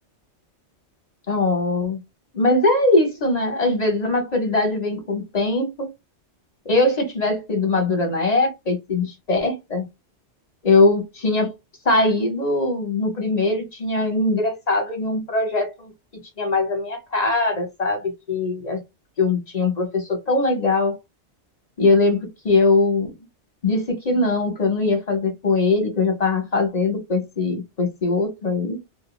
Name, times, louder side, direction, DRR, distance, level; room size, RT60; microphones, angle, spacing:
voice 1, 1.3-2.0 2.3-5.9 6.7-9.8 10.6-11.5 11.8-15.9 16.4-18.8 19.2-21.0 21.8-23.1 23.6-28.8, left 3 dB, 40° left, 0.8 m, -21 dB
2.5 x 2.0 x 3.0 m
omnidirectional pair, 1.2 m